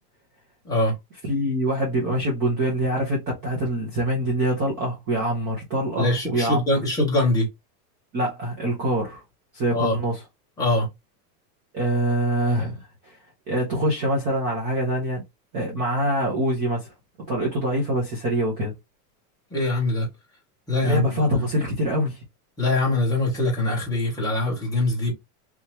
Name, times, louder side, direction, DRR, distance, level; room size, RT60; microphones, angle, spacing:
voice 1, 0.6-0.9 6.0-7.5 9.7-10.0 10.6-10.9 19.5-20.1 20.7-21.5 22.6-25.1, left 2 dB, 5° left, 1.0 m, -23 dB
voice 2, 1.3-6.6 8.1-9.2 9.5-10.2 11.7-13.2 13.5-15.2 15.5-16.9 17.3-18.7 20.8-22.2, right 1 dB, 20° right, 0.7 m, -24 dB
3.4 x 2.9 x 3.0 m
supercardioid pair, 175°, 49 cm